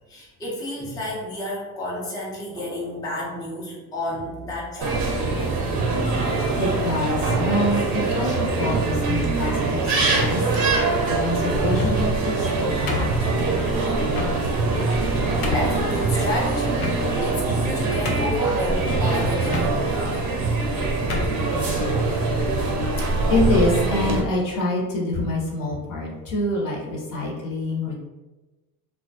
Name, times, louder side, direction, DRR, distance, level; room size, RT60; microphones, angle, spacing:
voice 1, 0.1-5.2 8.2-8.3 15.5-20.0, left 1 dB, 10° left, -5 dB, 0.6 m, -30 dB
Drum, 2.5-4.1 7.2-10.0, right 3 dB, 90° right, 0.5 m, -36 dB
sound 1, 4.8-24.2, right 3 dB, 40° right, 0.6 m, -23 dB
voice 2, 6.6-10.5 10.8-14.0 22.6-22.7 23.3-28.0, left 1 dB, 45° left, -3 dB, 0.8 m, -26 dB
sound 2, 11.6-12.2 12.9-13.5 14.1-14.4 14.9-15.0 15.4-15.8 16.8-17.3 17.7-17.8 18.1-18.5 19.5-19.7 20.5-20.7 21.1-21.4, left 4 dB, 80° left, 0.6 m, -29 dB
2.2 x 2.1 x 2.6 m, 1.1 s
hypercardioid pair, 80°, 46 cm